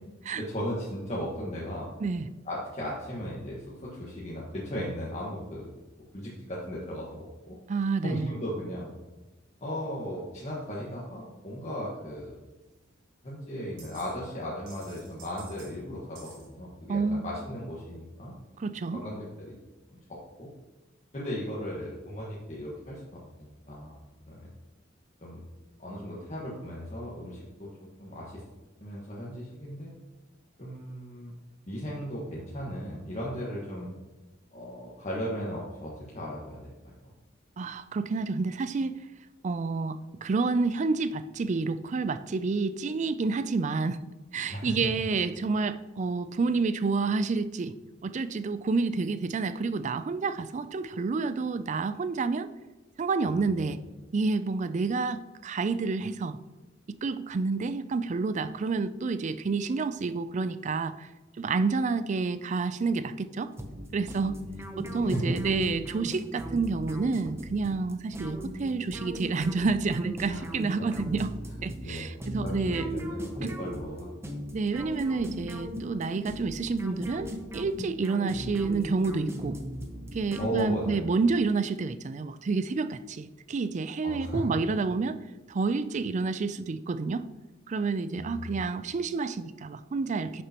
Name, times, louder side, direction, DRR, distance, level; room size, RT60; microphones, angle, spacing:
voice 1, 0.4-1.9 2.4-5.7 6.1-7.6 8.0-8.9 9.6-12.4 13.2-18.3 18.9-19.5 19.9-20.5 21.1-24.5 25.2-25.4 25.8-28.4 28.8-29.9 30.6-31.3 31.7-33.9 34.5-36.9 44.5-44.7 53.2-53.7 64.4-65.4 70.3-70.4 71.8-72.1 72.4-74.4 80.4-81.1 84.0-84.4 88.2-88.6, equal, 35° left, -6 dB, 1.4 m, -36 dB
voice 2, 7.7-8.3 16.9-17.2 18.6-19.0 37.6-39.0 39.4-44.0 44.3-47.7 48.0-52.5 53.0-53.8 54.1-56.4 56.9-61.1 61.4-63.5 63.9-64.4 64.8-71.3 71.6-72.9 73.4-73.6 74.5-79.6 80.1-85.2 85.5-87.2 87.7-90.4, right 4 dB, 35° right, 13 dB, 0.4 m, -29 dB
sound 1, 12.7-12.8 13.8-14.1 14.4-15.7 16.1-16.5, right 4 dB, 70° right, 2.7 m, -51 dB
sound 2, 63.6-81.1, equal, 15° right, 0.8 m, -38 dB
11.0 x 6.8 x 2.9 m, 1.1 s
head